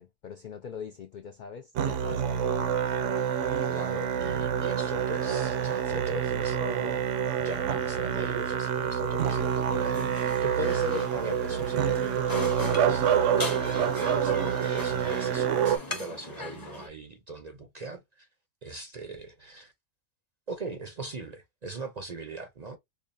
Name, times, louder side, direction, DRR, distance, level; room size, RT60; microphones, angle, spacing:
voice 1, 0.0-2.8, left 7 dB, 70° left, 0.4 m, -42 dB
Musical instrument, 1.8-15.8, right 8 dB, 75° right, 0.9 m, -27 dB
voice 2, 3.6-7.0 7.4-18.3 18.6-19.7 20.5-22.8, right 2 dB, 45° right, 0.5 m, -39 dB
sound 1, 9.2-16.9, left 2 dB, 20° left, 0.8 m, -39 dB
5.2 x 2.4 x 2.5 m
omnidirectional pair, 1.3 m